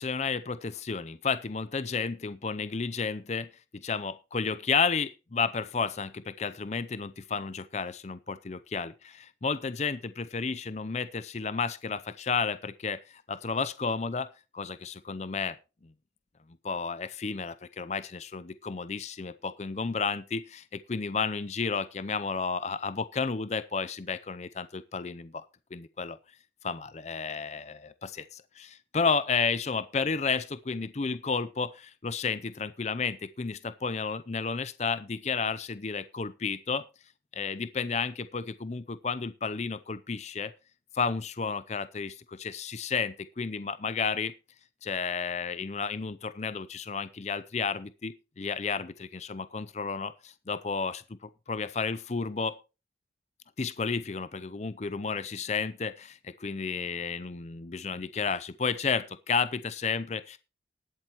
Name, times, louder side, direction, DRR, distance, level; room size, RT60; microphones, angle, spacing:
voice 1, 0.0-14.3 14.5-15.6 16.6-25.5 25.7-26.2 26.6-36.8 37.3-40.5 40.9-44.3 44.8-52.6 53.6-60.4, left 5 dB, 35° left, 14 dB, 0.5 m, -32 dB
19.5 x 7.7 x 3.0 m, 0.29 s
head